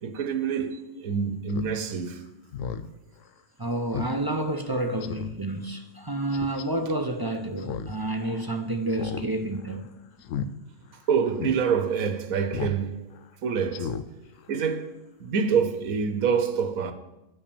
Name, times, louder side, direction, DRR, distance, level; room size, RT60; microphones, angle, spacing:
voice 1, 0.0-2.2 11.1-13.0 13.4-13.9 14.5-16.9, right 6 dB, 85° right, 1.3 m, -26 dB
Speech synthesizer, 1.5-1.7 2.1-2.2 2.5-2.9 3.3-3.4 3.9-4.1 4.5-4.6 5.0-5.4 6.3-6.6 7.6-8.0 8.2-8.3 8.9-9.3 9.5-9.8 10.2-10.5 10.9-11.0 11.4-11.6 12.5-12.8 13.1-13.3 13.7-14.0 14.4-14.5, left 7 dB, 75° left, 0.9 m, -33 dB
voice 2, 3.6-9.9, right 1 dB, 30° right, 0.4 m, -29 dB
10.5 x 5.6 x 6.9 m
omnidirectional pair, 1.4 m